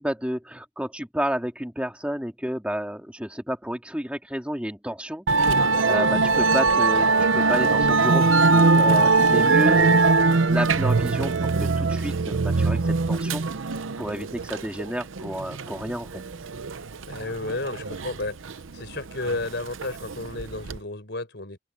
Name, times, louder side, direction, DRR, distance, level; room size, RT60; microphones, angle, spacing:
voice 1, 0.0-9.8 10.5-11.3 11.6-16.2, equal, 5° right, 2.4 m, -31 dB
Musical instrument, 5.3-20.8, right 3 dB, 90° right, 0.8 m, -22 dB
voice 2, 9.7-10.1 17.0-18.4 18.7-21.6, left 2 dB, 60° left, 4.7 m, -32 dB
open air
head